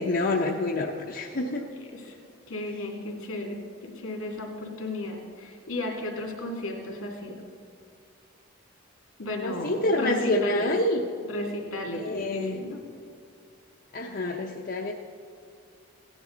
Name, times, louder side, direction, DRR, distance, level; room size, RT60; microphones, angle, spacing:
voice 1, 0.0-1.7 9.4-11.0 12.0-12.5 13.9-14.9, left 1 dB, 45° left, -1 dB, 0.7 m, -27 dB
voice 2, 2.5-7.4 9.2-10.7 11.3-12.8, left 2 dB, 70° left, 0 dB, 2.4 m, -34 dB
16.0 x 10.0 x 3.9 m, 2.4 s
head